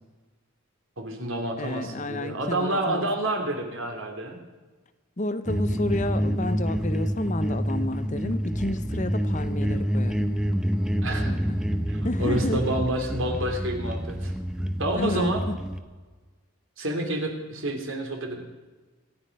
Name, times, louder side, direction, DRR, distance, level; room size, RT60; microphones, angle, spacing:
voice 1, 1.0-4.4 11.0-11.3 11.8-14.3 14.8-15.4 16.8-18.4, right 1 dB, 65° right, 3 dB, 3.2 m, -29 dB
voice 2, 1.6-3.1 5.2-10.3 11.2-11.6 12.0-12.7 14.9-15.6, left 2 dB, 35° left, 11 dB, 0.8 m, -31 dB
sound 1, 5.5-15.8, equal, 5° right, 0.8 m, -27 dB
25.5 x 9.7 x 5.4 m, 1.3 s
head